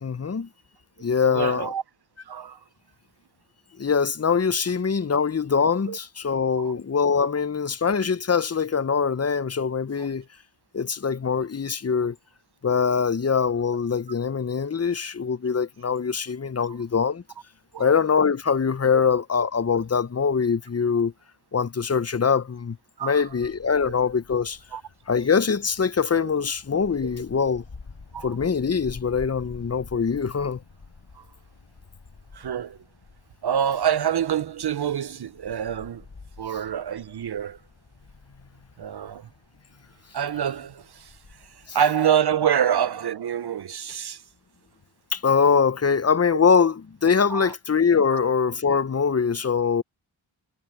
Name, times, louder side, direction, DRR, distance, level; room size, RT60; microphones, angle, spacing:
voice 1, 0.0-0.5 1.0-1.7 3.8-10.2 10.7-12.2 12.6-17.2 17.8-21.1 21.5-22.8 23.0-24.6 25.1-27.6 28.2-30.6 41.7-41.8 45.1-49.8, left 6 dB, 30° left, 0.8 m, -23 dB
voice 2, 1.2-1.8 2.3-2.6 5.9-6.0 6.6-6.7 10.0-10.1 17.7-17.9 23.0-23.2 24.7-24.8 27.0-27.1 28.1-28.3 31.2-31.3 32.3-32.8 33.4-36.0 36.4-37.6 38.8-39.3 40.1-41.1 41.7-44.2 47.3-47.5 48.1-48.2, right 9 dB, 55° right, 0.6 m, -26 dB
Wind, 23.1-41.7, left 4 dB, 55° left, 5.5 m, -49 dB
cardioid pair, 40°, 49 cm